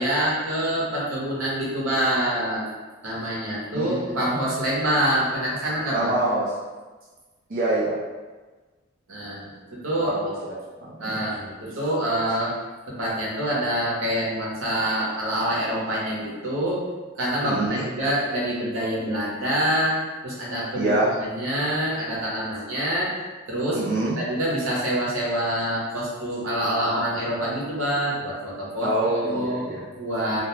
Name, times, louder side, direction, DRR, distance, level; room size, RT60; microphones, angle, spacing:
voice 1, 0.0-2.7 3.0-6.1 9.1-9.5 9.8-10.2 11.0-12.5 12.9-16.8 17.2-20.0 20.2-20.9 21.2-23.1 23.5-23.8 24.2-28.9 29.2-29.6 30.0-30.4, right 1 dB, 80° right, -5 dB, 0.8 m, -26 dB
voice 2, 3.7-4.2 5.9-6.5 7.5-7.9 10.0-10.3 10.8-11.2 17.4-17.8 20.8-21.1 23.7-24.2 28.8-29.8, right 2 dB, 45° right, -7 dB, 0.5 m, -25 dB
2.3 x 2.1 x 3.0 m, 1.3 s
head